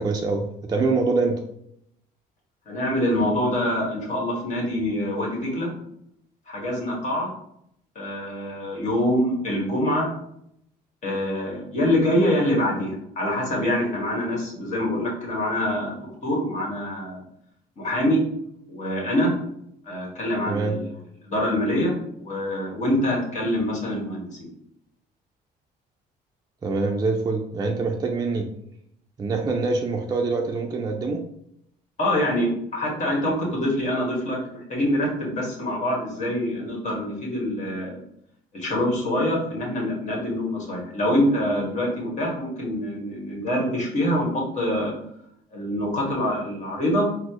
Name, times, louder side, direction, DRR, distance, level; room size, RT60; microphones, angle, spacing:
voice 1, 0.0-1.4 20.5-20.8 26.6-28.5 29.2-31.2, right 3 dB, 25° right, 2 dB, 0.4 m, -25 dB
voice 2, 2.7-5.7 6.5-7.3 7.9-10.1 11.0-16.0 16.2-17.2 17.8-18.2 18.7-19.3 19.8-20.9 21.2-21.9 22.2-24.4 32.0-37.9 38.5-44.9 45.5-47.1, left 1 dB, 45° left, -2 dB, 1.5 m, -25 dB
4.2 x 2.1 x 2.9 m, 0.74 s
cardioid pair, 110°, 17 cm